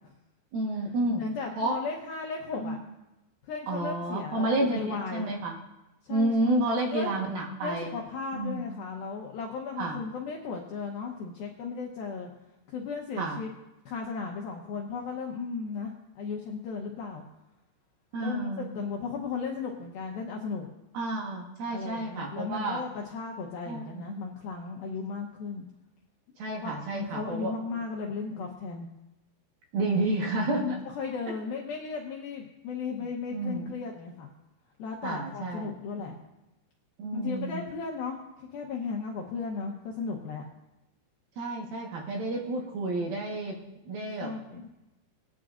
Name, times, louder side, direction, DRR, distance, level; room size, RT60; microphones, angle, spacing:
voice 1, 0.5-1.2 1.6-1.8 2.6-2.8 3.7-5.5 6.1-7.9 8.3-8.6 9.8-10.0 13.2-13.4 18.1-18.7 20.9-22.8 23.7-24.0 26.4-27.5 29.7-30.8 33.3-33.7 35.0-35.7 37.0-37.6 41.4-44.3, right 2 dB, 65° right, -1 dB, 2.6 m, -30 dB
voice 2, 1.2-2.8 3.4-5.3 6.0-7.1 7.6-12.3 12.7-13.5 13.9-17.2 18.2-20.7 21.7-25.6 26.6-28.9 30.6-34.3 34.8-36.1 37.1-40.4 44.2-44.7, left 5 dB, 75° left, -1 dB, 2.2 m, -36 dB
20.5 x 9.9 x 2.5 m, 0.98 s
omnidirectional pair, 5.5 m